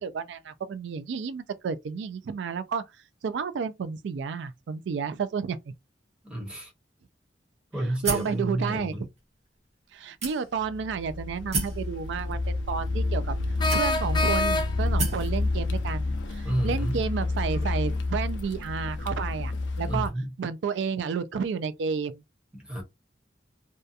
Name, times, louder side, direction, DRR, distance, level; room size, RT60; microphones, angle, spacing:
voice 1, 0.0-2.8 3.2-5.7 8.0-8.9 9.9-13.3 13.7-19.5 19.8-20.1 20.4-22.2, right 6 dB, 75° right, 0.3 m, -31 dB
voice 2, 6.2-6.7 7.7-9.0 16.4-16.9 19.8-20.3 22.5-22.8, right 1 dB, 5° right, 1.0 m, -30 dB
sound 1, 8.0-8.4 9.2-9.3 10.2-10.7 11.5-11.8 12.8-12.9 13.7-14.2 15.0-15.3, right 3 dB, 40° right, 1.1 m, -30 dB
Car, 10.6-20.1, left 2 dB, 85° left, 0.5 m, -29 dB
sound 2, 11.3-11.4 13.6-15.0, left 2 dB, 25° left, 0.4 m, -27 dB
2.7 x 2.2 x 2.4 m
head